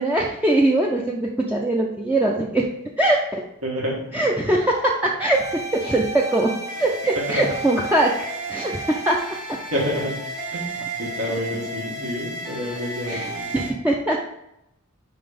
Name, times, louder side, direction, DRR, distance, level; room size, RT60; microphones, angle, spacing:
voice 1, 0.0-2.7 3.0-3.4 4.1-5.4 5.7-6.5 6.8-9.2 13.1-13.3 13.5-14.3, right 1 dB, 5° right, -2 dB, 0.4 m, -21 dB
voice 2, 3.6-4.2 7.3-7.4 9.7-10.2 10.5-13.5, equal, 80° right, -3 dB, 1.7 m, -28 dB
sound 1, 5.3-13.7, right 2 dB, 55° right, 1.5 m, -33 dB
5.1 x 3.9 x 5.0 m, 0.83 s
head